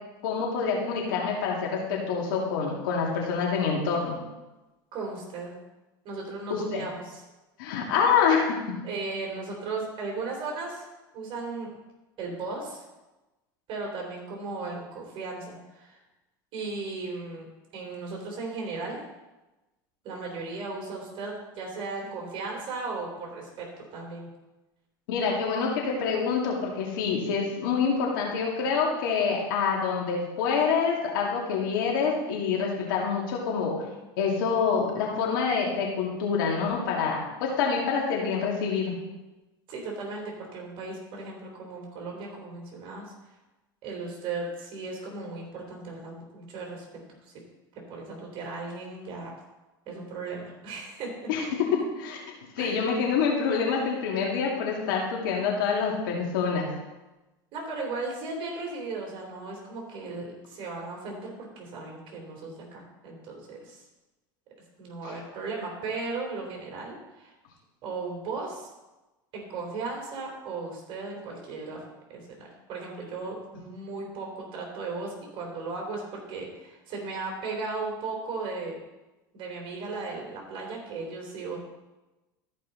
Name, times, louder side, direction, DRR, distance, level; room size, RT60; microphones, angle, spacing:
voice 1, 0.2-4.2 6.5-6.8 7.6-8.5 25.1-33.7 34.2-38.9 51.3-51.5 52.0-52.2 52.6-56.7, left 5 dB, 75° left, -2 dB, 2.7 m, -26 dB
voice 2, 4.9-5.6 6.0-7.2 7.7-7.8 8.8-10.9 11.1-11.7 12.2-12.8 13.7-16.0 16.5-17.5 17.7-19.1 20.0-23.7 23.9-24.3 39.7-43.1 43.8-46.9 47.9-49.3 49.9-51.3 52.6-52.9 57.5-63.8 64.8-67.3 67.8-68.7 69.3-71.8 72.1-78.8 79.3-81.6, right 3 dB, 50° right, 0 dB, 3.7 m, -36 dB
14.0 x 5.4 x 4.2 m, 1.1 s
hypercardioid pair, 95°, 11 cm